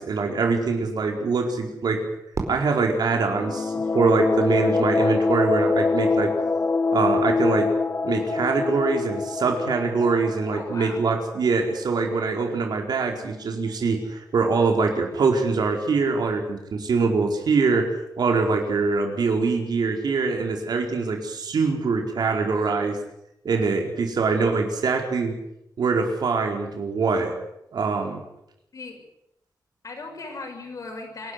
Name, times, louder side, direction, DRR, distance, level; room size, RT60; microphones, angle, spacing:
voice 1, 0.0-2.0 2.5-6.3 6.9-7.7 8.0-17.9 18.2-23.0 23.4-25.3 25.8-27.3 27.7-28.2, right 4 dB, 80° right, 3 dB, 4.6 m, -23 dB
Fireworks, 2.3-4.5, right 3 dB, 45° right, 4.6 m, -36 dB
sound 1, 3.1-11.7, left 4 dB, 35° left, 0.8 m, -25 dB
voice 2, 10.5-11.0 28.7-29.0 29.8-31.3, left 3 dB, 55° left, 3 dB, 6.7 m, -37 dB
27.0 x 12.0 x 9.9 m, 0.81 s
wide cardioid pair, 155°, 7 cm